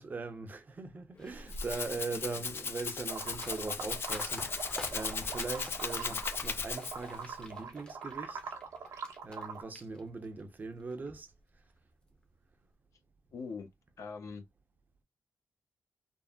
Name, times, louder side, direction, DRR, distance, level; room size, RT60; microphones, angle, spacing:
voice 1, 0.0-8.4 9.2-11.3, right 3 dB, 35° right, 0.6 m, -41 dB
Rattle (instrument), 1.2-7.2, left 5 dB, 45° left, 0.4 m, -37 dB
sound 1, 1.2-9.5 9.8-10.4 10.8-11.1, left 1 dB, 15° left, 0.7 m, -50 dB
sound 2, 3.1-6.4 6.7-9.6, right 6 dB, 80° right, 0.9 m, -43 dB
voice 2, 13.3-13.7 14.0-14.4, left 5 dB, 75° left, 0.8 m, -43 dB
3.6 x 2.0 x 2.2 m
wide cardioid pair, 140°, 5 cm